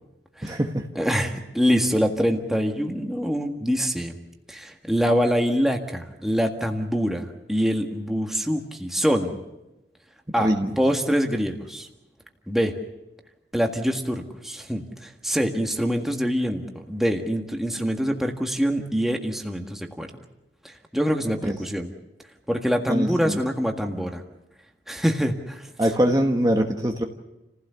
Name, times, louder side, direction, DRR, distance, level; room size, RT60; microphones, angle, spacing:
voice 1, 0.4-0.9 10.4-10.7 21.4-21.6 22.9-23.4 25.8-27.0, equal, 20° right, 3 dB, 1.4 m, -23 dB
voice 2, 1.0-4.2 4.5-9.4 10.3-10.5 10.8-11.9 12.5-12.7 13.5-20.1 20.6-21.9 22.5-24.2 24.9-25.7, equal, ahead, 3 dB, 1.7 m, -25 dB
29.0 x 16.0 x 7.0 m, 0.98 s
head